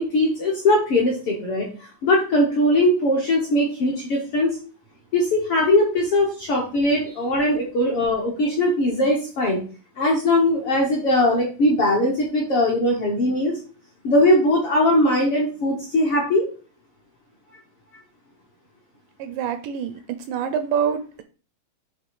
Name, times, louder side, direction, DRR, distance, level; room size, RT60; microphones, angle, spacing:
voice 1, 0.0-1.7 2.0-4.6 5.1-9.6 10.0-13.6 14.0-16.5, left 1 dB, 60° left, -2 dB, 1.5 m, -20 dB
voice 2, 19.2-20.0 20.3-21.2, right 7 dB, 80° right, 10 dB, 2.0 m, -26 dB
7.7 x 3.1 x 4.8 m, 0.38 s
omnidirectional pair, 4.1 m